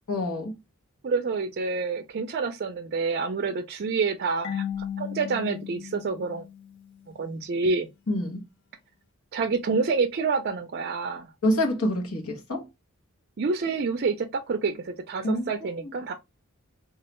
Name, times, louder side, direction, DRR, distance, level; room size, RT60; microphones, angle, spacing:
voice 1, 0.1-0.6 8.1-8.4 11.4-12.7 15.2-15.8, left 1 dB, 80° left, 0.9 m, -27 dB
voice 2, 1.0-4.6 5.0-6.4 7.1-7.9 9.3-11.3 13.4-16.1, right 4 dB, 45° right, 0.4 m, -28 dB
Marimba xylophone / Wood, 4.4-7.2, left 9 dB, 50° left, 0.5 m, -36 dB
3.1 x 2.3 x 3.0 m
head